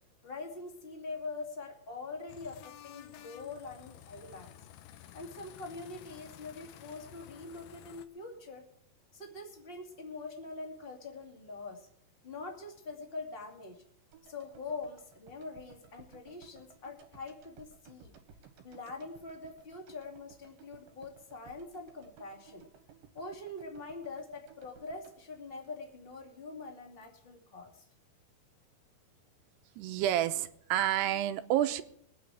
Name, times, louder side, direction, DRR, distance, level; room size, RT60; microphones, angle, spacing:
voice 1, 0.2-4.6 5.1-8.7 9.1-11.9 12.2-13.8 14.2-18.1 18.6-22.6 23.1-27.8, left 3 dB, 20° left, 1 dB, 1.6 m, -44 dB
sound 1, 2.3-8.1, left 12 dB, 75° left, 2.4 m, -52 dB
sound 2, 14.1-26.3 26.6-26.7, right 7 dB, 70° right, 3.2 m, -59 dB
voice 2, 29.8-31.8, right 12 dB, 85° right, 10 dB, 2.9 m, -29 dB
22.0 x 9.3 x 4.8 m, 0.67 s
omnidirectional pair, 4.7 m